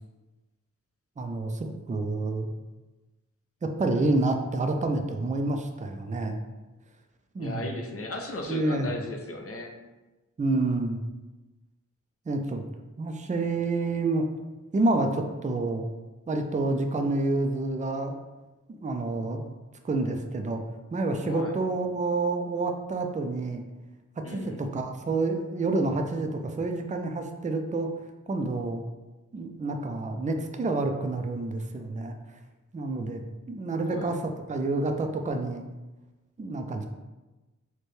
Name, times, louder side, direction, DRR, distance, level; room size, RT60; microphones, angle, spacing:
voice 1, 1.2-2.5 3.6-6.4 7.3-7.6 8.5-8.9 10.4-11.0 12.3-12.6 13.0-14.3 14.7-15.9 16.3-18.2 18.7-19.4 19.8-20.6 20.9-23.6 24.2-27.9 28.3-28.8 29.3-32.2 32.7-35.7 36.4-36.9, right 2 dB, 25° right, 4 dB, 0.3 m, -28 dB
voice 2, 7.4-9.8 21.2-21.6 24.2-24.6 33.8-34.2, left 2 dB, 45° left, 2 dB, 0.6 m, -37 dB
4.3 x 2.2 x 3.1 m, 1.1 s
wide cardioid pair, 65°, 31 cm